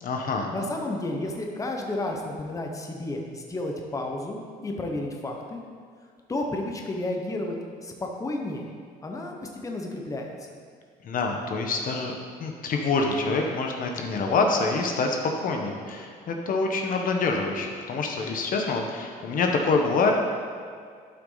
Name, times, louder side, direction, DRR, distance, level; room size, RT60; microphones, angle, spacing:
voice 1, 0.0-0.5 11.0-12.1 12.4-15.2 15.4-20.1, left 4 dB, 55° left, 2 dB, 1.1 m, -26 dB
voice 2, 0.5-5.6 6.3-7.6 7.8-8.7 9.0-9.3 9.6-10.3, left 2 dB, 20° left, 1 dB, 1.0 m, -31 dB
12.0 x 6.0 x 4.0 m, 2.1 s
cardioid pair, 110°, 17 cm